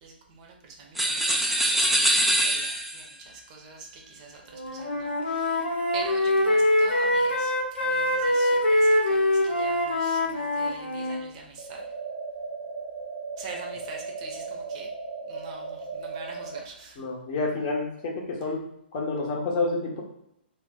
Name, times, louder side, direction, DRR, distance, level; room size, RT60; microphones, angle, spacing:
voice 1, 0.0-1.4 1.7-5.6 5.9-7.5 7.8-11.8 13.4-14.9 15.3-17.0, right 4 dB, 35° right, 1 dB, 0.7 m, -44 dB
sound 1, 0.9-3.1, right 1 dB, ahead, 0.3 m, -23 dB
Wind instrument woodwind instrument, 4.5-11.2, left 1 dB, 80° left, 0.8 m, -24 dB
sound 2, 11.6-16.6, right 4 dB, 90° right, 0.9 m, -37 dB
voice 2, 17.0-18.6 18.9-20.0, left 3 dB, 35° left, 0 dB, 0.8 m, -29 dB
2.7 x 2.1 x 3.6 m, 0.79 s
figure-of-eight pair, 125°, 6 cm